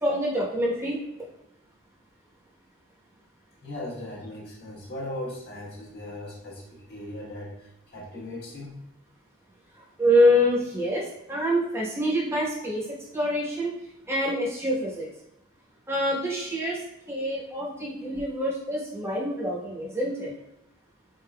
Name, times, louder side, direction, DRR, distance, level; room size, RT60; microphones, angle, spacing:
voice 1, 0.0-1.0 9.7-12.8 13.1-13.7 14.1-15.1 15.9-20.3, equal, 10° right, -5 dB, 1.0 m, -26 dB
voice 2, 3.6-8.8, left 1 dB, 50° left, -7 dB, 1.2 m, -38 dB
4.4 x 3.7 x 2.2 m, 0.87 s
head